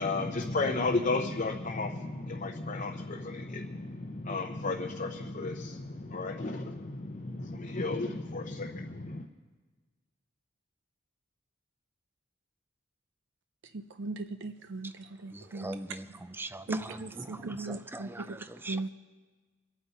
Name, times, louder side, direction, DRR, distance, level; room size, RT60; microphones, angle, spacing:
voice 1, 0.0-9.2, left 3 dB, 35° left, 0.8 m, -33 dB
voice 2, 13.7-15.7 16.7-18.4 18.7-18.9, right 2 dB, 60° right, 0.6 m, -38 dB
voice 3, 15.3-18.9, right 2 dB, 10° right, 0.4 m, -41 dB
26.0 x 9.2 x 4.1 m
head